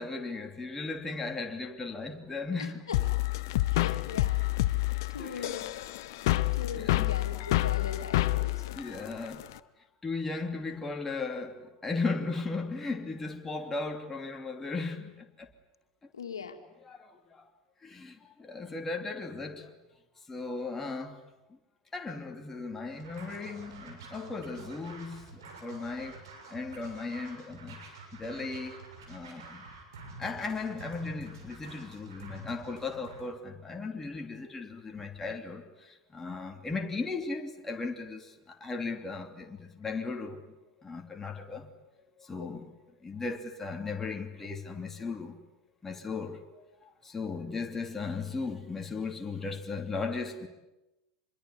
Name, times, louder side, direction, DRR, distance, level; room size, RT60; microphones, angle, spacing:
voice 1, 0.0-2.9 3.7-3.9 5.2-5.6 6.4-6.5 6.7-7.2 8.7-9.5 10.0-15.5 16.8-17.5 17.8-19.7 20.3-21.2 21.9-26.2 26.5-27.8 28.1-29.6 30.2-40.4 40.8-41.7 42.2-42.7 43.0-45.4 45.8-50.5, left 3 dB, 15° left, 2.9 m, -37 dB
voice 2, 2.9-3.2 3.7-4.4 5.1-5.7 6.5-8.8 16.1-16.6 42.4-42.5, left 6 dB, 75° left, 2.4 m, -40 dB
sound 1, 2.9-9.6, left 17 dB, 55° left, 0.9 m, -28 dB
Scratching (performance technique), 22.9-33.3, right 3 dB, 65° right, 6.9 m, -48 dB
25.5 x 22.5 x 10.0 m
figure-of-eight pair, 85°, 2 cm